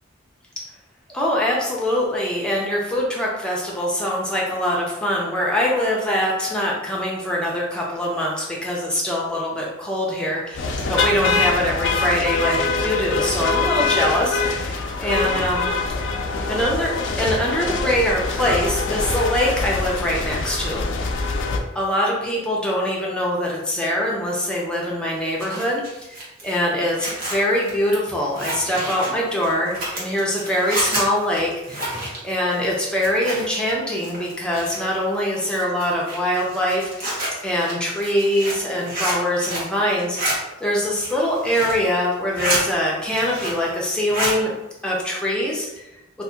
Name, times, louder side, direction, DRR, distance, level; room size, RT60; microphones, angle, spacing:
voice 1, 1.1-15.7 16.5-16.9 17.2-20.8 21.2-21.3 21.7-37.1 37.4-40.2 40.6-44.5 44.8-45.8, left 1 dB, 5° left, -4 dB, 0.6 m, -23 dB
sound 1, 10.5-21.6, left 3 dB, 70° left, 0.4 m, -24 dB
Zipper (clothing), 25.1-33.7 34.0-35.0 35.4-39.7 40.0-40.3 40.8-41.8 42.2-42.6 43.0-43.7 43.9-44.4, right 1 dB, 45° right, 1.1 m, -29 dB
2.6 x 2.5 x 3.7 m, 0.95 s
head